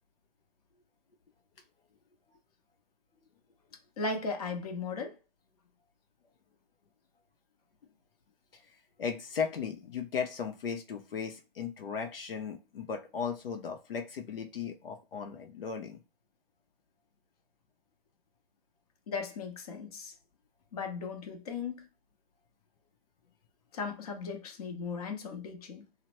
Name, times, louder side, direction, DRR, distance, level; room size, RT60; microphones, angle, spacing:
voice 1, 4.0-5.2 19.1-20.1 20.7-21.8 23.7-25.8, left 4 dB, 40° left, 0.8 m, -37 dB
voice 2, 9.0-16.0, left 6 dB, 70° left, 0.7 m, -36 dB
2.8 x 2.0 x 2.9 m
hypercardioid pair, 160°, 30 cm